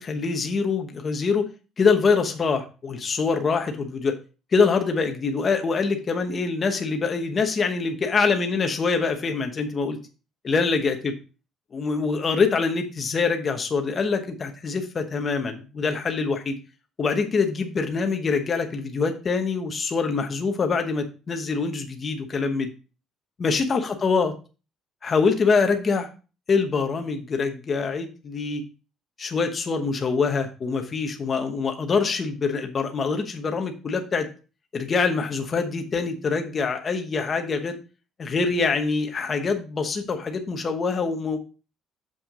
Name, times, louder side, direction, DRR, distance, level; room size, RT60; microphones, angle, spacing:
voice 1, 0.0-1.5 1.8-4.1 4.5-10.0 10.4-11.1 11.7-16.6 17.0-22.7 23.4-24.3 25.0-26.1 26.5-28.6 29.2-34.3 34.7-37.7 38.2-41.4, left 4 dB, 25° left, 5 dB, 1.0 m, -24 dB
7.1 x 5.8 x 3.7 m, 0.34 s
cardioid pair, 180°, 0 cm